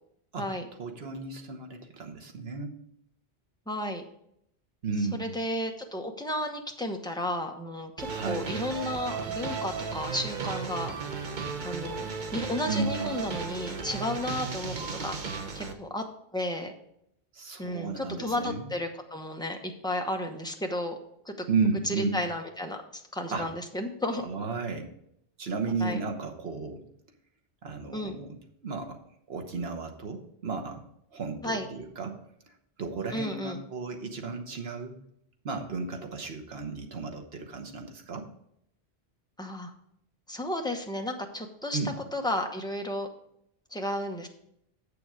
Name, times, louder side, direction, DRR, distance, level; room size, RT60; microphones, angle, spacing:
voice 1, 0.8-2.7 4.8-5.4 8.1-8.5 12.7-13.1 17.3-18.7 21.5-22.2 23.3-23.5 24.2-24.9 25.4-26.8 27.6-28.4 28.6-29.0 29.3-30.8 31.1-32.2 32.8-34.9 35.4-38.3 41.7-41.9, right 4 dB, 70° right, 4 dB, 1.3 m, -33 dB
voice 2, 3.7-4.0 5.1-10.9 11.6-14.8 15.0-15.2 15.5-16.0 16.3-16.7 17.6-21.0 21.2-21.5 21.8-24.2 25.8-26.0 27.9-28.2 31.4-31.7 33.1-33.6 39.4-39.7 40.3-41.8 42.1-43.1 43.7-44.3, left 1 dB, 5° left, 3 dB, 0.8 m, -33 dB
sound 1, 8.0-15.7, right 5 dB, 50° right, 0.9 m, -35 dB
7.8 x 6.8 x 4.8 m, 0.74 s
omnidirectional pair, 1.1 m